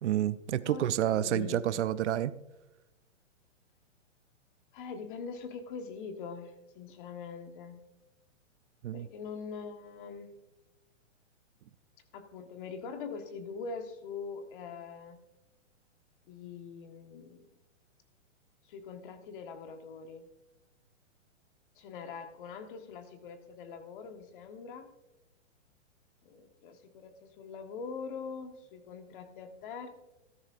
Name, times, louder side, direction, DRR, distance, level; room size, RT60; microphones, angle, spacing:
voice 1, 0.0-2.3 8.8-9.1, right 11 dB, 65° right, 16 dB, 0.6 m, -29 dB
voice 2, 0.6-1.8 4.7-7.8 8.9-10.3 12.1-15.2 16.3-17.4 18.6-20.3 21.7-24.9 26.2-29.9, left 5 dB, 45° left, 7 dB, 1.5 m, -43 dB
14.0 x 12.5 x 2.6 m, 0.96 s
hypercardioid pair, 145°, 37 cm